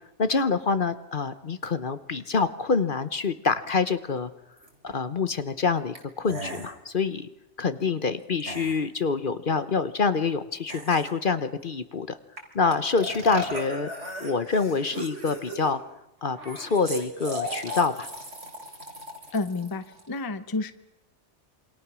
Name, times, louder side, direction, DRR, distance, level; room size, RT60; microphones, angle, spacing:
voice 1, 0.2-4.3 4.8-7.3 7.6-12.1 12.5-13.9 14.2-15.8 16.2-18.1, left 4 dB, 50° left, 12 dB, 1.1 m, -26 dB
sound 1, 4.6-4.7 6.0-6.1 6.3-6.8 8.4-8.8 10.7-11.2 12.4-12.5 12.7-15.8 16.3-20.1, right 1 dB, 90° right, 3.9 m, -36 dB
voice 2, 19.3-20.7, left 3 dB, 20° left, 12 dB, 0.8 m, -30 dB
27.5 x 24.5 x 6.2 m, 0.93 s
omnidirectional pair, 1.2 m